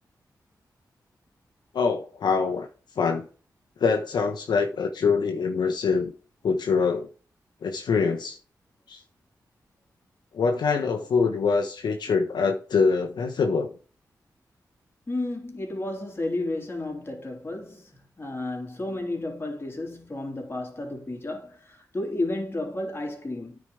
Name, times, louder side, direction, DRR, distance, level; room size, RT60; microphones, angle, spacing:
voice 1, 1.7-2.7 3.0-3.2 3.8-6.1 6.4-7.1 7.6-8.4 8.9-9.0 10.3-13.7, left 5 dB, 80° left, 1.2 m, -24 dB
voice 2, 15.1-23.6, left 2 dB, 30° left, 3.3 m, -32 dB
9.5 x 5.0 x 4.9 m
cardioid pair, 55°, 7 cm